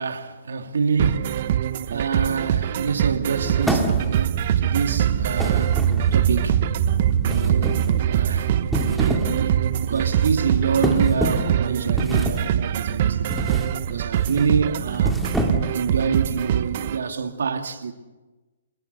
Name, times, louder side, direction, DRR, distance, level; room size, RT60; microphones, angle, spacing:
voice 1, 0.0-1.6 1.9-5.8 6.1-6.6 7.2-8.5 8.9-13.3 13.9-15.2 15.7-17.9, right 5 dB, 80° right, 2.4 m, -26 dB
sound 1, 1.0-17.0, right 10 dB, 45° right, 1.0 m, -25 dB
sound 2, 3.4-15.8, right 9 dB, 30° right, 3.2 m, -26 dB
sound 3, 3.6-4.3 5.4-6.3 7.3-8.0 8.6-9.4 9.7-10.0 10.8-11.6 12.0-12.5 13.3-13.8 14.1-14.4 14.9-15.8, right 1 dB, ahead, 2.1 m, -26 dB
27.0 x 20.5 x 6.8 m
hypercardioid pair, 155°, 0 cm